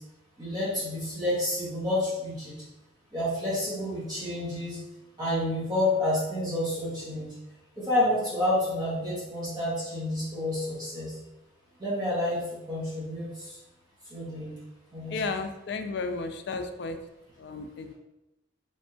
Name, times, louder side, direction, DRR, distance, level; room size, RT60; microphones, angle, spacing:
voice 1, 0.4-2.5 3.1-4.8 5.2-7.3 7.8-11.2 11.8-13.6 14.1-14.5 14.9-15.1, left 1 dB, 20° right, -11 dB, 1.5 m, -29 dB
voice 2, 15.1-17.0 17.4-17.9, left 3 dB, 60° left, 6 dB, 0.4 m, -33 dB
3.5 x 3.2 x 2.8 m, 0.92 s
head